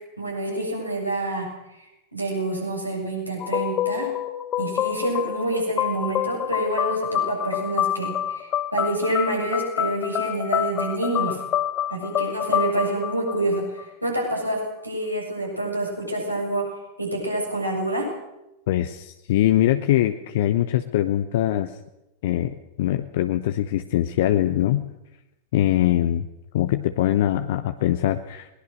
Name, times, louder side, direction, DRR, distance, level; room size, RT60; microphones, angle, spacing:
voice 1, 0.2-1.8 2.1-4.1 4.6-11.4 11.9-16.7 17.0-18.1, right 1 dB, 90° right, -1 dB, 7.2 m, -27 dB
sound 1, 3.4-14.1, left 11 dB, 30° left, 1.2 m, -27 dB
voice 2, 18.7-21.7 22.2-24.8 25.5-26.3 26.5-28.6, left 12 dB, 55° left, 9 dB, 0.9 m, -22 dB
21.5 x 20.0 x 6.4 m, 0.92 s
figure-of-eight pair, 90°, 0 cm